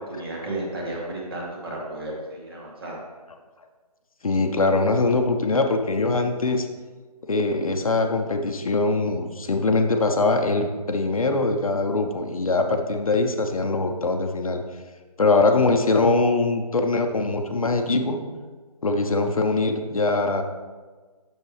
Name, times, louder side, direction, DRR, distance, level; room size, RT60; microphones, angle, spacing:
voice 1, 0.0-3.0, right 1 dB, 35° right, -3 dB, 2.0 m, -33 dB
voice 2, 4.2-6.7 7.3-14.6 15.2-18.2 18.8-20.4, left 3 dB, 60° left, 5 dB, 0.8 m, -22 dB
8.2 x 6.8 x 3.4 m, 1.4 s
figure-of-eight pair, 165°, 20 cm